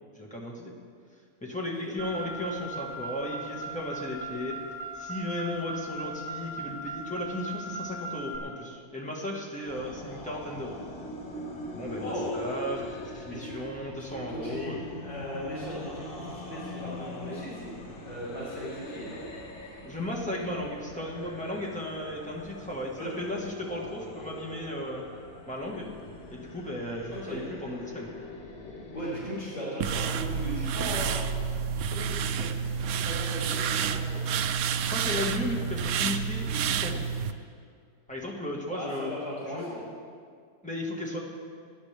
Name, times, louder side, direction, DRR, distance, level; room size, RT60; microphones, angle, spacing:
voice 1, 0.1-0.7 1.4-10.8 11.7-15.0 19.8-25.0 25.5-25.9 26.3-28.1 34.9-37.0 38.1-39.1 39.4-39.6 40.6-41.2, left 1 dB, 5° left, -3 dB, 1.5 m, -35 dB
Car, 2.0-8.4, right 2 dB, 35° right, 1.4 m, -38 dB
sound 1, 9.7-29.4, left 2 dB, 30° left, 1.7 m, -42 dB
voice 2, 12.0-12.4 13.3-13.6 14.0-17.7 18.0-19.2 23.0-23.1 27.1-27.4 28.9-31.3 31.7-34.2 38.7-39.8, equal, 80° left, -10 dB, 4.7 m, -38 dB
sound 2, 29.8-37.3, right 7 dB, 75° right, 1.0 m, -29 dB
18.5 x 10.5 x 3.5 m, 2.1 s
omnidirectional pair, 1.6 m